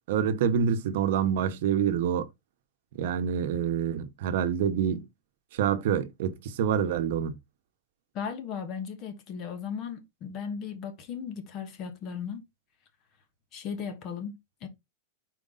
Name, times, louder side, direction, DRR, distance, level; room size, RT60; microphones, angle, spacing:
voice 1, 0.1-2.3 2.9-5.1 5.5-7.4, right 8 dB, 65° right, 0.9 m, -27 dB
voice 2, 8.1-12.4 13.5-14.4 14.6-14.7, left 7 dB, 30° left, 1.2 m, -36 dB
5.2 x 4.6 x 3.9 m
supercardioid pair, 165°, 0 cm